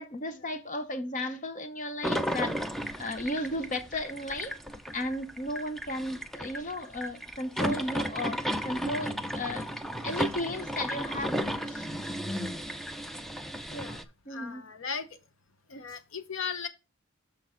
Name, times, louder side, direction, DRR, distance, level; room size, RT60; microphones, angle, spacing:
voice 1, 0.0-2.5 3.0-4.5 4.9-9.7 10.0-11.9 14.3-14.6, left 1 dB, 35° left, 0.8 m, -34 dB
sound 1, 2.0-14.0, equal, ahead, 0.5 m, -34 dB
voice 2, 14.3-15.1 15.7-16.7, left 6 dB, 65° left, 0.8 m, -37 dB
6.6 x 6.2 x 3.8 m
head